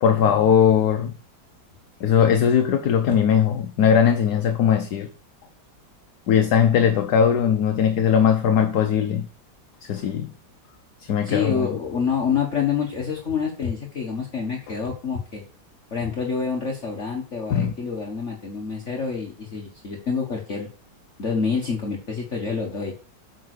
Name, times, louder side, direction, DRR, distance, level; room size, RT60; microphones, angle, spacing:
voice 1, 0.0-1.1 2.0-5.1 6.3-9.3 9.8-10.3 11.0-11.7 17.5-17.7, left 8 dB, 65° left, 1.2 m, -19 dB
voice 2, 11.2-15.4 15.9-20.7 21.2-22.9, left 6 dB, 40° left, 1.6 m, -27 dB
8.7 x 5.3 x 6.5 m
omnidirectional pair, 2.0 m